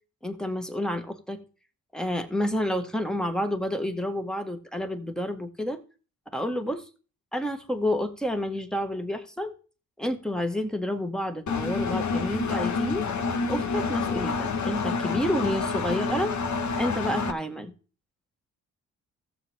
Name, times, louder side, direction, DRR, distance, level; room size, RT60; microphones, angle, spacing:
voice 1, 0.2-1.4 1.9-5.8 6.3-6.8 7.3-9.5 10.0-13.1 13.5-16.3 16.8-17.7, equal, ahead, 1.9 m, -29 dB
Engine, 11.5-17.3, left 4 dB, 45° left, 1.3 m, -28 dB
15.0 x 7.2 x 3.6 m
supercardioid pair, 55°, 39 cm